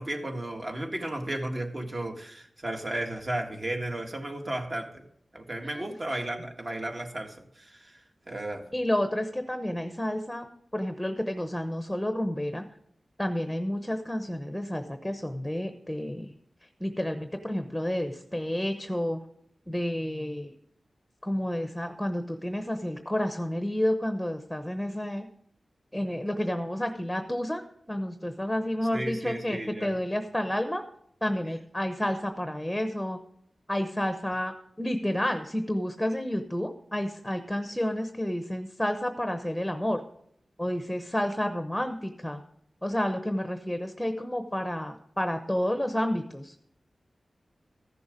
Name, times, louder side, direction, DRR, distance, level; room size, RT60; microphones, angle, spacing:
voice 1, 0.0-5.1 5.3-8.0 8.3-8.7 28.9-29.9, right 1 dB, 40° right, 2 dB, 1.7 m, -34 dB
voice 2, 8.7-10.5 10.7-12.6 13.2-16.3 16.8-19.2 19.7-20.5 21.2-25.3 25.9-27.6 27.9-30.8 31.2-33.2 33.7-40.0 40.6-42.4 42.8-46.5, left 1 dB, 5° left, 7 dB, 0.9 m, -30 dB
14.5 x 7.0 x 5.2 m, 0.68 s
wide cardioid pair, 80°, 0 cm